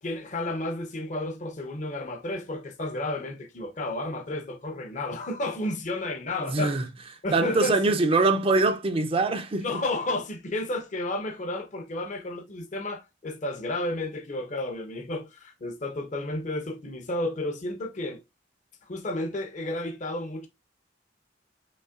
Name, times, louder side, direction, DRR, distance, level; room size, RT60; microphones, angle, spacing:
voice 1, 0.0-6.8 7.2-7.9 9.6-18.2 18.8-20.5, left 1 dB, 45° left, 0.7 m, -32 dB
voice 2, 6.5-6.8 7.3-9.8, right 3 dB, 30° right, 0.5 m, -23 dB
5.4 x 3.1 x 2.4 m
head